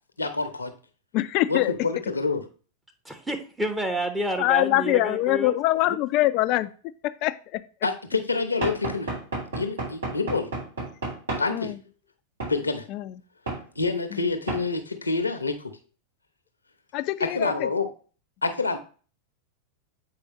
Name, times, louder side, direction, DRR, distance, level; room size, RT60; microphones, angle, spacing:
voice 1, 0.2-0.7 1.5-2.4 7.8-9.1 9.5-10.5 11.3-11.7 12.5-12.9 13.8-15.7 17.2-17.9 18.4-18.8, left 3 dB, 80° left, 8 dB, 0.9 m, -27 dB
voice 2, 1.1-1.7 4.4-7.6 11.5-11.8 12.9-13.1 14.1-14.2 16.9-17.7, left 16 dB, 40° left, 13 dB, 0.5 m, -24 dB
voice 3, 3.0-5.5, right 1 dB, 10° right, 4 dB, 1.0 m, -29 dB
Knock / Wood, 8.6-11.5 12.4-12.6 13.5-13.6 14.5-14.7, right 2 dB, 70° right, 3.4 m, -31 dB
7.6 x 4.8 x 3.0 m, 0.38 s
figure-of-eight pair, 90°, 0 cm